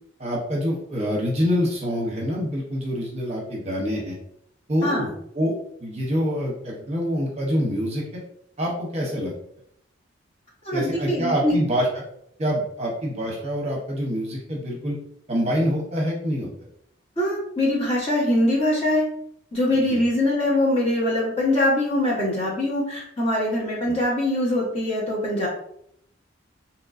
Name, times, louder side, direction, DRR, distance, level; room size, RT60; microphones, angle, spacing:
voice 1, 0.2-4.2 4.7-5.1 5.3-8.2 8.6-9.3 10.7-12.0 12.4-15.0 15.3-16.5 19.9-20.0 23.9-24.0, equal, 35° right, -2 dB, 0.8 m, -26 dB
voice 2, 10.6-11.5 17.2-19.0 19.5-25.5, left 1 dB, 30° left, -6 dB, 1.2 m, -23 dB
3.7 x 2.9 x 2.5 m, 0.71 s
head